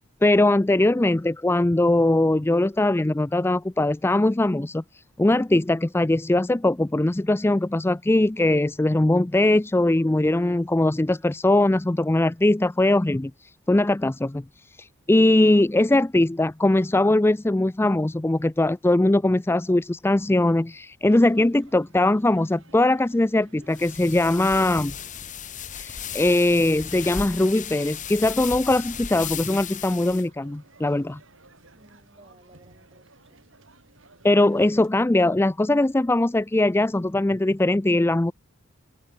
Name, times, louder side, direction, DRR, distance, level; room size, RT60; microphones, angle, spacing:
voice 1, 0.2-4.8 5.2-13.3 13.7-14.4 14.8-24.9 25.7-31.2 34.2-38.3, left 1 dB, 10° left, 0.4 m, -21 dB
voice 2, 0.9-1.2 31.7-33.5, right 1 dB, 30° right, 6.6 m, -56 dB
sound 1, 21.1-34.9, right 2 dB, 65° right, 6.6 m, -56 dB
sound 2, 23.7-30.2, left 8 dB, 40° left, 1.2 m, -35 dB
head